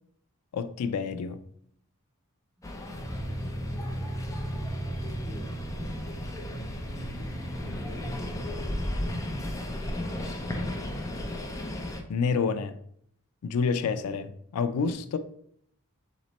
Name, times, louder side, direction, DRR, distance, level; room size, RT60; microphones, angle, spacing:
voice 1, 0.5-1.4 12.1-12.7 13.4-15.2, left 5 dB, 85° left, 0.4 m, -28 dB
sound 1, 2.6-12.0, left 1 dB, 15° left, 0.5 m, -35 dB
sound 2, 3.0-8.9, right 1 dB, 30° right, 1.0 m, -36 dB
voice 2, 9.7-10.3, left 1 dB, 10° right, 1.3 m, -55 dB
4.2 x 3.1 x 4.1 m
head